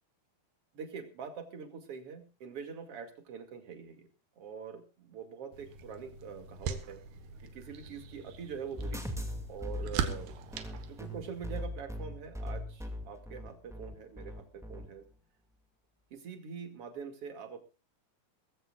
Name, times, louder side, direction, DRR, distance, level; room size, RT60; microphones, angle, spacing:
voice 1, 0.7-4.1 4.4-7.0 7.5-9.1 9.5-10.3 11.0-15.0 16.1-17.6, right 6 dB, 40° right, 6 dB, 2.9 m, -44 dB
sound 1, 5.5-11.7, right 7 dB, 90° right, 3.4 m, -41 dB
sound 2, 8.8-14.8, left 1 dB, ahead, 1.1 m, -40 dB
21.5 x 15.0 x 2.5 m, 0.33 s
omnidirectional pair, 4.4 m